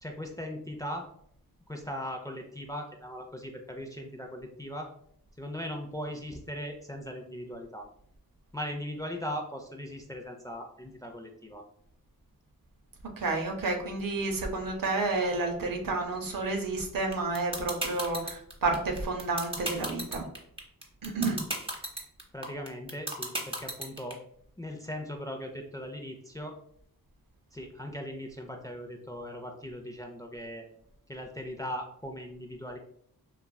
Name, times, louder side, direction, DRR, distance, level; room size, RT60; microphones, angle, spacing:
voice 1, 0.0-1.1 1.7-4.9 5.4-7.9 8.5-11.6 22.3-24.2 24.6-26.5 27.5-30.7 31.1-32.8, equal, 10° left, 2 dB, 0.4 m, -39 dB
voice 2, 13.2-20.3 21.0-21.4, right 3 dB, 65° right, 3 dB, 0.7 m, -30 dB
sound 1, 17.1-24.1, right 1 dB, 15° right, 0.8 m, -33 dB
3.1 x 2.3 x 2.2 m, 0.68 s
cardioid pair, 40°, 36 cm